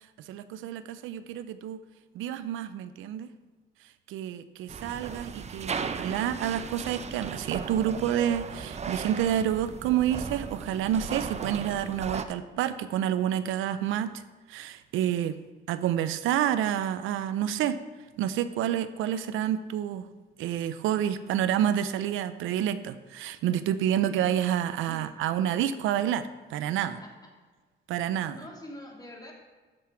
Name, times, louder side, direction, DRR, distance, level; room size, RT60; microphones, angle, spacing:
voice 1, 0.3-1.8 2.1-3.3 4.1-14.2 14.5-15.4 15.7-17.8 18.2-20.1 20.4-27.0 27.9-28.4, right 10 dB, 90° right, 13 dB, 0.5 m, -29 dB
sound 1, 4.7-12.2, right 6 dB, 35° right, 0.6 m, -36 dB
voice 2, 23.9-24.3 24.8-25.1 26.6-27.3 28.3-29.3, left 1 dB, 20° left, -1 dB, 2.6 m, -46 dB
13.0 x 5.8 x 4.9 m, 1.4 s
cardioid pair, 90°, 20 cm